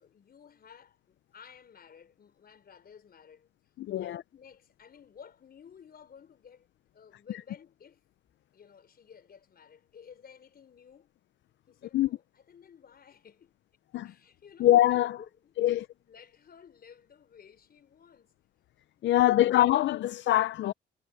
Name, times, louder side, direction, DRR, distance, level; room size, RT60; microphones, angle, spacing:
voice 1, 0.0-3.5 3.9-6.7 6.9-8.0 8.5-11.1 11.7-13.6 14.0-14.7 15.2-18.3 19.0-19.4, left 7 dB, 50° left, 4.6 m, -54 dB
voice 2, 3.8-4.2 11.9-12.1 13.9-14.1 14.6-15.2 15.6-15.8 19.0-20.7, left 13 dB, 65° left, 0.5 m, -23 dB
cardioid pair, 90°, 20 cm